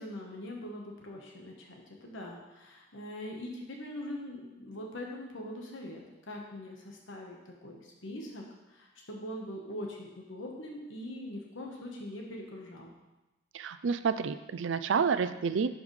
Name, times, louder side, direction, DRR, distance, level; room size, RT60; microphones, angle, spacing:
voice 1, 0.0-12.9, left 1 dB, 85° left, 0 dB, 1.2 m, -42 dB
voice 2, 13.5-15.7, right 6 dB, 75° right, 12 dB, 0.4 m, -29 dB
11.5 x 5.1 x 3.2 m, 1.0 s
head